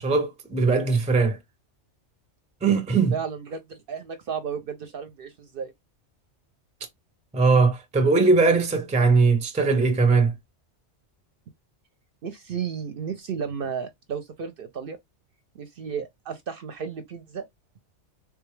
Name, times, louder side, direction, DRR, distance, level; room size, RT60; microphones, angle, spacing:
voice 1, 0.0-1.4 2.6-3.2 7.3-10.3, right 4 dB, 10° right, 0.4 m, -20 dB
voice 2, 3.1-5.7 12.2-15.0 15.5-17.5, right 6 dB, 60° right, 0.6 m, -33 dB
3.6 x 2.2 x 3.1 m
omnidirectional pair, 1.2 m